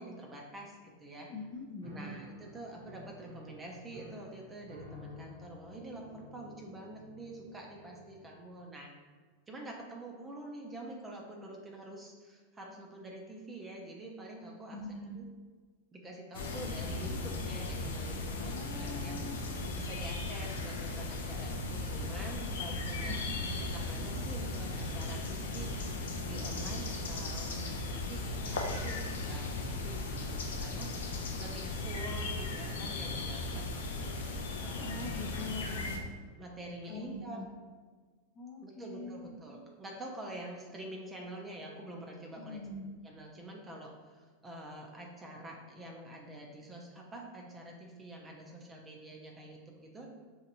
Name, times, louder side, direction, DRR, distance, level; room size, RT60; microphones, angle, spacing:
voice 1, 0.0-1.3 1.9-8.9 9.5-14.8 15.2-15.3 15.9-19.2 19.7-30.9 31.4-34.1 34.6-35.6 36.4-37.4 38.6-42.6 43.0-50.1, right 1 dB, 20° right, 0 dB, 0.5 m, -47 dB
voice 2, 1.3-2.2 14.7-15.2 18.3-19.4 23.0-23.4 34.7-36.0 36.9-37.5 38.3-39.4 42.4-42.9, left 2 dB, 35° left, -4 dB, 0.5 m, -43 dB
Piano, 1.8-8.6, left 1 dB, 80° right, 0.9 m, -52 dB
sound 1, 16.3-36.0, left 2 dB, 90° left, 0.5 m, -37 dB
3.9 x 2.5 x 2.8 m, 1.4 s
hypercardioid pair, 120°, 0 cm